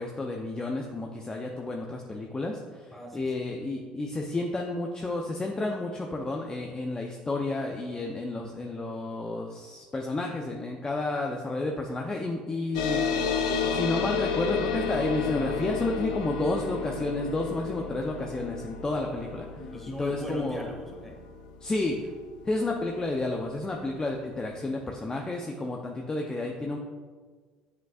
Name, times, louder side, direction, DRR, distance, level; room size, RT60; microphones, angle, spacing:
voice 1, 0.0-13.4 13.7-19.5 20.0-20.7 21.6-22.1 22.4-26.8, left 2 dB, 20° left, 1 dB, 0.7 m, -31 dB
voice 2, 2.9-3.4 19.5-21.2, left 1 dB, 5° left, 0 dB, 1.7 m, -39 dB
sound 1, 12.7-23.7, left 6 dB, 85° left, 0.6 m, -32 dB
7.4 x 5.8 x 2.4 m, 1.5 s
hypercardioid pair, 75°, 4 cm